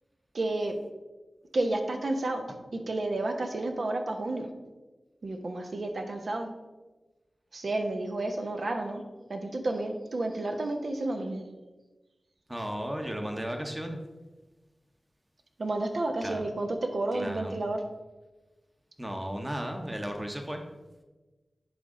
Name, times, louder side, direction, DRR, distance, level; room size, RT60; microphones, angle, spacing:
voice 1, 0.3-0.8 1.5-4.5 5.2-6.5 7.5-9.0 9.3-11.4 15.6-17.8, right 2 dB, 75° right, 5 dB, 0.8 m, -31 dB
voice 2, 12.5-14.0 16.2-16.5 17.1-17.6 19.0-20.6, equal, 20° right, 3 dB, 1.0 m, -35 dB
10.0 x 3.5 x 3.8 m, 1.2 s
cardioid pair, 45°, 0 cm